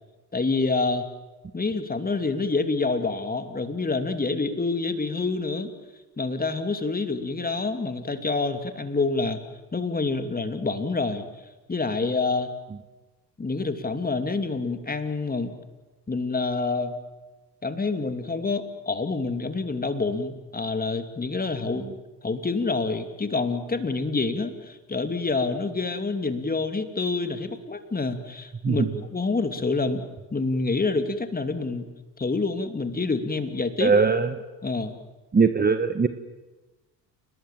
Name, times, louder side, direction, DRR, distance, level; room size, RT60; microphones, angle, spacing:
voice 1, 0.3-1.1 1.5-5.7 6.2-9.4 9.7-11.3 11.7-12.5 13.4-15.6 16.1-17.0 17.6-21.9 22.2-30.1 30.3-31.8 32.2-33.9 34.6-34.9, left 3 dB, 20° left, 8 dB, 2.8 m, -27 dB
voice 2, 33.8-34.3 35.3-36.1, right 5 dB, 20° right, 10 dB, 1.4 m, -20 dB
29.5 x 19.5 x 7.6 m, 1.2 s
hypercardioid pair, 60°, 49 cm